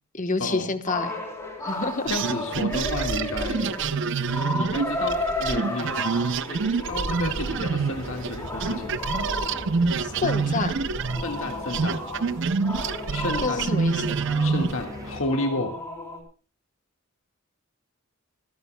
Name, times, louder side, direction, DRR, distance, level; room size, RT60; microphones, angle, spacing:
voice 1, 0.1-1.2 1.6-2.1 10.0-10.7 13.4-14.2, left 3 dB, 35° left, 10 dB, 1.1 m, -28 dB
sound 1, 0.9-16.2, left 1 dB, 15° left, 3.3 m, -34 dB
voice 2, 2.1-3.8 4.5-5.9 6.5-9.0 11.2-12.0 13.1-13.6 14.4-15.7, left 2 dB, 65° left, 4 dB, 1.7 m, -31 dB
sound 2, 2.1-8.4 8.6-14.8, right 5 dB, 55° right, 0.6 m, -26 dB
sound 3, 6.9-15.2, equal, 15° right, 1.3 m, -41 dB
25.0 x 11.0 x 2.2 m, 0.36 s
head